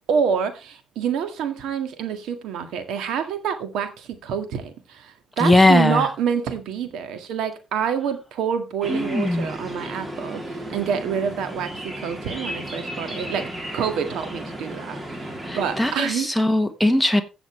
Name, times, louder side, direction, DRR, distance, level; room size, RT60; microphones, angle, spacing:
voice 1, 0.1-13.5 13.7-16.3, right 7 dB, 85° right, 1.9 m, -27 dB
voice 2, 5.4-6.1 8.9-9.5 15.4-17.2, left 1 dB, ahead, 1.3 m, -19 dB
sound 1, 8.8-15.9, right 1 dB, 20° right, 3.0 m, -34 dB
15.5 x 7.1 x 3.2 m
cardioid pair, 90°, 0 cm